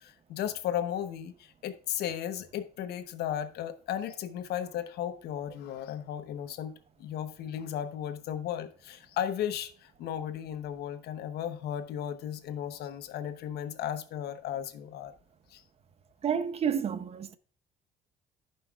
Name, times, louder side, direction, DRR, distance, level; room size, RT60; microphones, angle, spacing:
voice 1, 0.0-6.7 7.0-15.1 15.5-15.6, left 10 dB, 75° left, 0.9 m, -35 dB
voice 2, 16.2-17.4, right 7 dB, 35° right, 0.7 m, -30 dB
14.5 x 5.6 x 2.4 m
cardioid pair, 110°, 17 cm